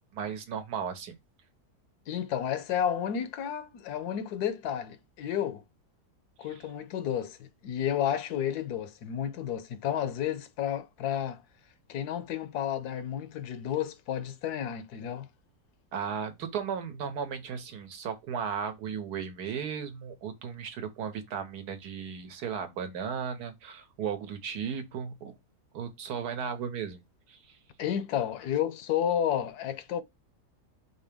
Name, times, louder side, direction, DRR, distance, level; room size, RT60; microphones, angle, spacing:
voice 1, 0.1-1.1 15.9-25.3 25.7-27.0 27.3-27.6, right 7 dB, 75° right, 1.4 m, -35 dB
voice 2, 2.1-5.6 6.4-11.4 11.9-15.3 27.8-30.0, left 9 dB, 75° left, 1.1 m, -31 dB
5.0 x 2.9 x 3.5 m
omnidirectional pair, 1.7 m